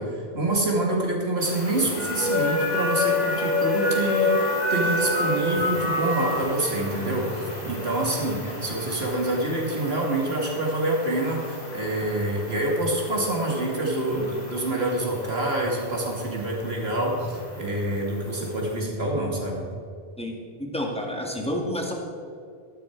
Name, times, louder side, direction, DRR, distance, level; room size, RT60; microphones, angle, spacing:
voice 1, 0.0-19.7, right 1 dB, 80° right, -1 dB, 2.6 m, -26 dB
sound 1, 1.4-18.8, left 2 dB, 40° left, 2.8 m, -30 dB
Mallet percussion, 3.6-7.1, left 7 dB, 35° right, 1.1 m, -35 dB
voice 2, 20.2-21.9, left 1 dB, 5° left, -1 dB, 1.9 m, -30 dB
13.0 x 11.5 x 4.6 m, 2.4 s
omnidirectional pair, 1.0 m